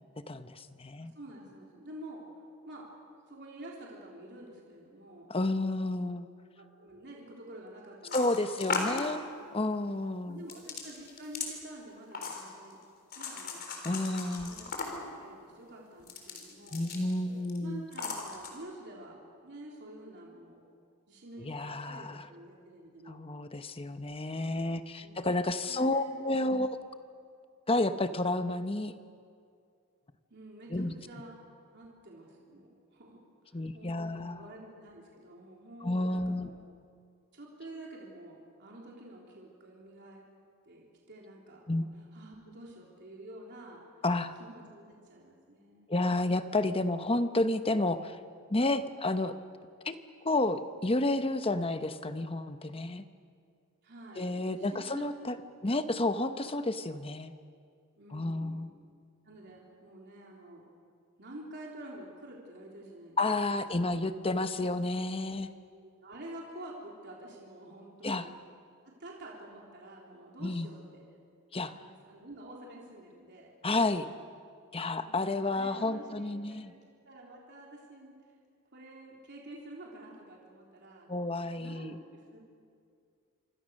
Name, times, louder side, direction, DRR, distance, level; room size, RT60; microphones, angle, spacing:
voice 1, 0.3-1.1 5.3-6.3 8.1-9.2 9.5-10.4 13.8-14.6 16.7-17.9 21.4-22.3 23.1-26.8 27.7-28.9 30.7-30.9 33.5-34.4 35.8-36.5 41.7-41.9 44.0-44.3 45.9-48.2 48.5-49.4 49.8-50.0 50.2-53.0 54.2-55.3 55.6-57.3 58.1-58.7 63.2-65.5 68.0-68.3 70.4-70.7 71.5-71.7 73.6-74.1 74.7-76.7 81.1-82.0, left 2 dB, 25° left, 10 dB, 0.9 m, -31 dB
voice 2, 1.0-2.2 2.6-2.9 3.3-5.3 6.5-8.8 9.3-9.5 10.3-12.8 13.2-14.7 15.0-16.8 17.6-20.6 21.1-23.2 25.0-26.6 30.3-31.4 31.7-36.6 37.3-40.2 40.7-41.9 42.1-43.8 44.4-46.2 53.8-55.1 55.8-56.3 58.0-58.8 59.2-60.7 61.2-63.9 65.7-68.3 68.8-71.0 71.7-73.5 75.0-76.8 77.0-78.1 78.7-81.1 81.6-82.4, right 1 dB, 50° right, -3 dB, 3.8 m, -49 dB
sound 1, 8.1-9.1 10.5-11.5 12.1-12.7 13.1-15.1 16.0-17.1 17.4-17.6 17.9-18.5, left 4 dB, 45° left, 3.9 m, -37 dB
26.5 x 25.5 x 6.5 m, 2.3 s
head